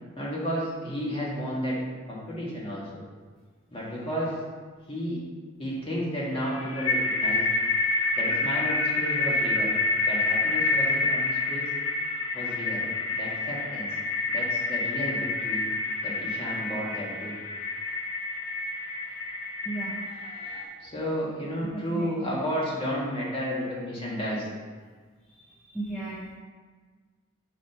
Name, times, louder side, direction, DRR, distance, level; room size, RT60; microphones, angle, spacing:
voice 1, 0.2-1.8 2.1-3.0 3.7-4.4 4.9-5.2 5.6-7.4 8.2-9.7 10.1-11.7 12.3-12.8 13.2-13.9 14.3-15.6 16.0-17.3 20.3-24.5, equal, 25° left, -6 dB, 1.9 m, -32 dB
sound 1, 6.4-20.7, left 2 dB, 80° left, 0.8 m, -28 dB
voice 2, 19.6-20.1 21.6-22.4 25.3-26.4, right 2 dB, 5° left, -8 dB, 0.8 m, -36 dB
6.0 x 4.5 x 5.5 m, 1.5 s
head